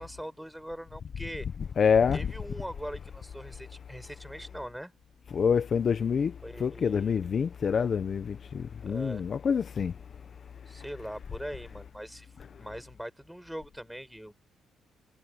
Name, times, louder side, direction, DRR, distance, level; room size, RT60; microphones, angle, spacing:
voice 1, 0.0-1.5 2.1-4.9 6.4-7.2 8.9-9.2 10.7-12.3 12.6-14.3, equal, 5° right, 4.9 m, -41 dB
voice 2, 1.8-2.2 5.3-6.3 6.6-9.9, left 6 dB, 50° left, 0.9 m, -26 dB
cardioid pair, 90°, 0 cm